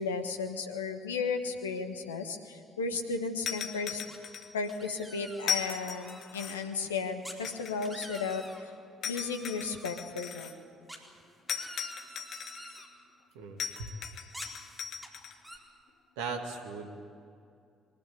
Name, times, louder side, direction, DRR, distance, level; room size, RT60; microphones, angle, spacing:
voice 1, 0.0-4.0 4.5-8.7 9.0-10.5, left 4 dB, 80° left, 6 dB, 1.5 m, -34 dB
sound 1, 3.5-4.8 5.4-6.8 7.4-8.6 9.0-10.6 11.5-12.8 13.6-15.4, left 7 dB, 50° left, 1.6 m, -38 dB
sound 2, 4.1-4.4 4.7-6.2 7.2-7.4 7.7-8.6 9.1-9.8 10.9-12.9 14.3-15.1 15.4-15.6, right 1 dB, 10° right, 4.2 m, -47 dB
voice 2, 13.3-13.9 16.2-17.0, right 4 dB, 70° right, 4 dB, 2.1 m, -38 dB
23.0 x 21.0 x 8.6 m, 2.4 s
figure-of-eight pair, 45°, 0 cm